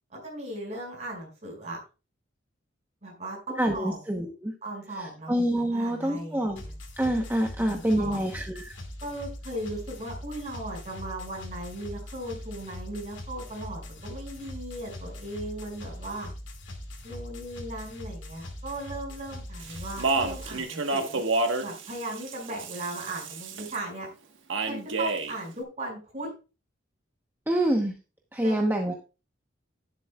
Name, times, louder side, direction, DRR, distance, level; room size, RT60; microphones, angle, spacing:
voice 1, 0.1-1.8 3.0-4.0 4.6-5.3 5.7-6.7 7.6-8.2 9.0-16.3 17.0-21.2 21.6-24.1 24.6-26.3 28.4-28.7, right 1 dB, 35° right, 0 dB, 5.5 m, -37 dB
voice 2, 3.6-4.5 5.0-6.6 7.0-8.7 27.5-27.9 28.3-28.9, right 1 dB, 10° right, 2 dB, 0.9 m, -26 dB
sound 1, 6.6-20.6, left 1 dB, 70° left, 2.2 m, -41 dB
Speech, 19.6-23.8 24.5-25.4, right 3 dB, 75° right, 1.3 m, -29 dB
11.0 x 10.5 x 2.3 m, 0.31 s
head